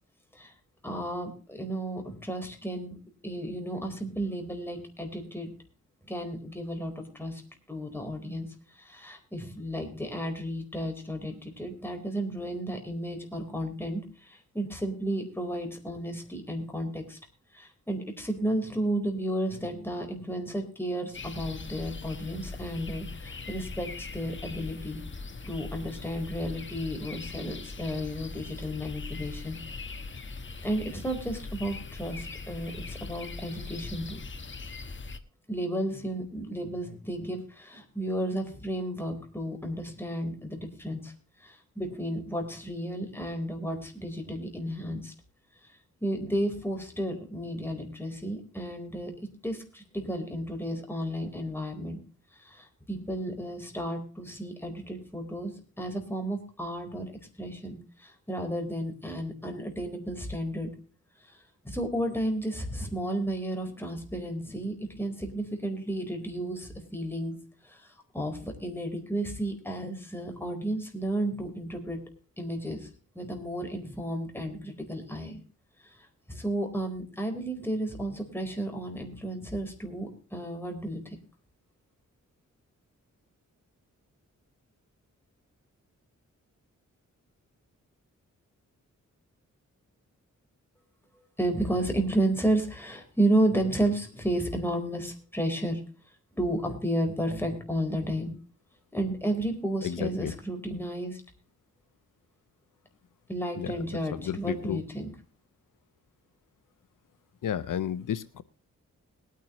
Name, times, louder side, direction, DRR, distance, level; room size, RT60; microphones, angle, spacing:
voice 1, 0.8-3.0 3.2-5.5 6.0-7.4 7.7-17.2 17.5-25.0 25.4-29.6 30.6-34.2 35.5-41.1 41.4-45.1 46.0-49.1 49.4-52.0 52.4-57.0 57.4-60.7 61.2-61.4 61.6-67.4 67.6-72.0 72.4-72.9 73.1-75.4 75.8-81.2 91.4-95.8 96.3-98.3 98.9-101.2 103.3-105.1, right 1 dB, 5° left, 3 dB, 4.2 m, -32 dB
sound 1, 21.1-35.2, left 3 dB, 40° left, 1.3 m, -41 dB
voice 2, 99.8-100.3 103.6-103.7 104.1-104.8 107.4-108.4, left 9 dB, 80° left, 13 dB, 0.8 m, -32 dB
21.5 x 9.3 x 3.1 m, 0.38 s
wide cardioid pair, 85°, 31 cm